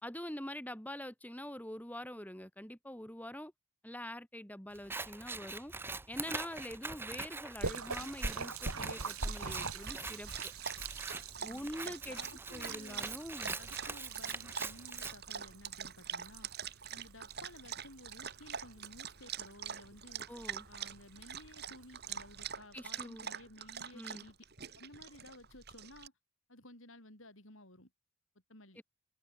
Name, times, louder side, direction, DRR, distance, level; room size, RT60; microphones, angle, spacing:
voice 1, 0.0-3.5 3.8-5.7 6.1-10.5 11.4-12.2 12.5-13.6 20.3-20.7 22.7-23.3 23.9-24.3 28.8-28.9, left 1 dB, 5° left, 3.1 m, -45 dB
Scissors, 4.7-15.1, right 3 dB, 10° right, 0.5 m, -44 dB
Splash splatter, 7.6-22.6, right 3 dB, 80° right, 3.4 m, -45 dB
Dog, 8.7-26.1, right 7 dB, 50° right, 2.9 m, -45 dB
voice 2, 11.4-13.2 13.5-16.5 16.9-20.3 20.7-24.4 24.7-26.1 26.5-27.9 28.5-28.8, left 1 dB, 60° left, 7.6 m, -55 dB
open air
head